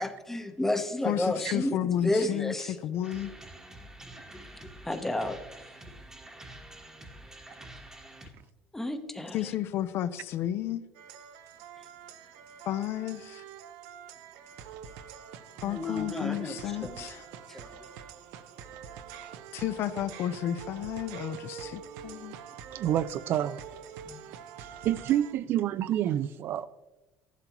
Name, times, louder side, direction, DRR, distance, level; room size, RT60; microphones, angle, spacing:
voice 1, 0.0-2.8 4.6-5.4 8.7-9.4 15.6-16.5 16.8-17.0 17.5-17.7 24.0-24.2, left 1 dB, 5° left, 0.8 m, -31 dB
voice 2, 1.0-3.3 9.3-10.8 12.6-13.4 15.6-17.3 19.5-22.4, left 11 dB, 50° left, 0.5 m, -32 dB
sound 1, 3.0-8.3, right 1 dB, 10° right, 1.1 m, -48 dB
sound 2, 10.9-25.3, right 8 dB, 85° right, 0.8 m, -45 dB
voice 3, 22.7-23.6 24.6-26.7, right 11 dB, 45° right, 0.4 m, -28 dB
14.5 x 11.5 x 3.0 m
cardioid pair, 155°, 5 cm